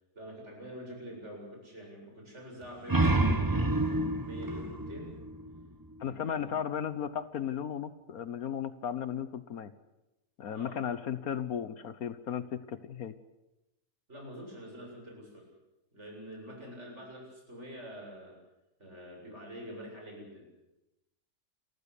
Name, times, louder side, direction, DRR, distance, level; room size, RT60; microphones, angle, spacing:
voice 1, 0.1-5.2 6.0-6.5 10.5-10.8 14.1-15.4 15.9-18.4 18.8-20.5, equal, 45° right, 0 dB, 8.1 m, -46 dB
sound 1, 2.6-6.1, right 2 dB, 15° right, 1.3 m, -29 dB
voice 2, 6.0-9.7 10.4-13.1, left 8 dB, 65° left, 13 dB, 1.4 m, -35 dB
29.5 x 14.5 x 8.4 m, 0.94 s
omnidirectional pair, 1.7 m